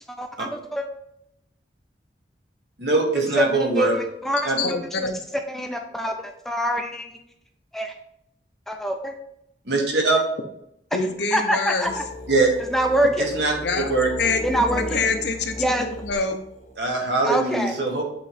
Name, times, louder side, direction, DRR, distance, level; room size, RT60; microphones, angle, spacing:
voice 1, 0.1-0.9 3.4-4.8 5.5-7.2 7.7-7.9 8.7-9.1 11.3-12.0 12.6-13.3 14.4-15.0 15.6-15.9 17.2-17.7, right 1 dB, ahead, 4 dB, 0.4 m, -25 dB
voice 2, 2.8-3.9 4.4-4.6 9.7-10.2 12.3-12.5 13.3-13.5 13.9-14.1 16.8-18.0, right 3 dB, 70° right, 0 dB, 1.4 m, -21 dB
voice 3, 4.6-5.2 10.9-11.9 13.6-13.9 14.2-16.4, left 4 dB, 70° left, 6 dB, 0.7 m, -26 dB
sound 1, 11.9-16.9, left 1 dB, 40° left, 0.8 m, -35 dB
7.8 x 3.1 x 4.2 m, 0.77 s
head